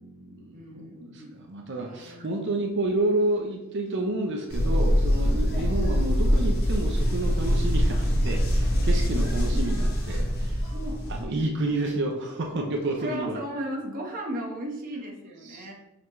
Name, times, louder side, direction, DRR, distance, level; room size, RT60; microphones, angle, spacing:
voice 1, 0.0-10.6 11.1-13.4 15.4-15.7, right 2 dB, 55° right, 2 dB, 0.7 m, -30 dB
voice 2, 0.5-1.3 1.8-2.3 9.5-9.6 10.7-11.0 12.5-12.6 13.0-15.7, right 1 dB, 40° right, -1 dB, 1.2 m, -36 dB
sound 1, 4.5-11.2, equal, 50° left, 1.4 m, -24 dB
6.9 x 4.3 x 3.1 m, 0.92 s
head